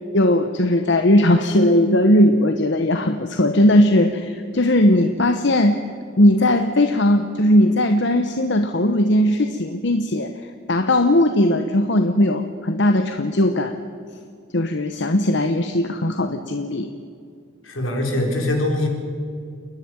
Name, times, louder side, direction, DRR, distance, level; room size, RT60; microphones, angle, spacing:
voice 1, 0.1-5.8 6.2-10.3 10.7-13.8 14.5-16.9, left 1 dB, 60° left, 7 dB, 1.0 m, -18 dB
voice 2, 17.6-18.9, left 1 dB, 85° left, 2 dB, 4.1 m, -22 dB
29.0 x 11.0 x 9.6 m, 2.3 s
head